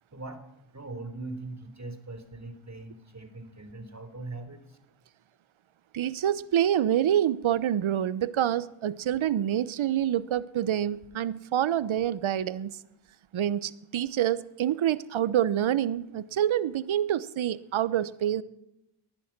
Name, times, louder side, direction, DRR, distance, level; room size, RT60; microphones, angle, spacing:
voice 1, 0.1-0.4 0.7-4.8, right 2 dB, 35° right, 9 dB, 3.7 m, -41 dB
voice 2, 5.9-12.7 13.3-18.4, right 11 dB, 70° right, 18 dB, 1.0 m, -27 dB
19.5 x 11.5 x 6.0 m, 0.86 s
supercardioid pair, 45°, 49 cm